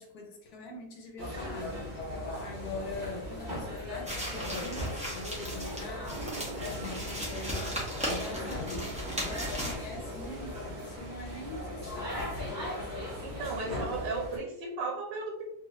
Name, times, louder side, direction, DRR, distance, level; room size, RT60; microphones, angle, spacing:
voice 1, 0.0-1.7 2.4-6.2 6.6-7.8 8.1-8.9 9.2-12.4, left 2 dB, 70° left, 2 dB, 1.2 m, -43 dB
sound 1, 1.2-14.4, left 1 dB, 35° right, 0.9 m, -38 dB
sound 2, 4.1-9.7, equal, 10° right, 0.4 m, -37 dB
Toilet flush, 6.0-13.8, right 3 dB, 70° right, 1.2 m, -49 dB
voice 2, 13.2-15.4, right 3 dB, 90° right, -2 dB, 1.3 m, -35 dB
3.2 x 2.5 x 3.0 m, 0.78 s
omnidirectional pair, 1.8 m